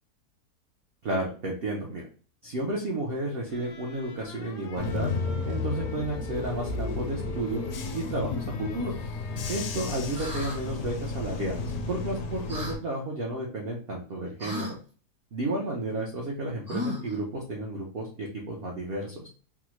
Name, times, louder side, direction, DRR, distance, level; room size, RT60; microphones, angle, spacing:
voice 1, 1.0-2.1 2.4-5.1 5.5-8.9 9.5-14.8 15.3-19.3, right 2 dB, 70° right, -1 dB, 0.5 m, -32 dB
sound 1, 3.5-11.0, left 2 dB, 90° left, 1.2 m, -45 dB
Bus / Engine, 4.8-12.8, left 4 dB, 70° left, 1.0 m, -33 dB
sound 2, 10.1-10.6 12.5-12.8 14.4-14.7 16.7-17.2, left 2 dB, 20° right, 0.5 m, -34 dB
3.5 x 2.0 x 2.9 m, 0.40 s
omnidirectional pair, 1.7 m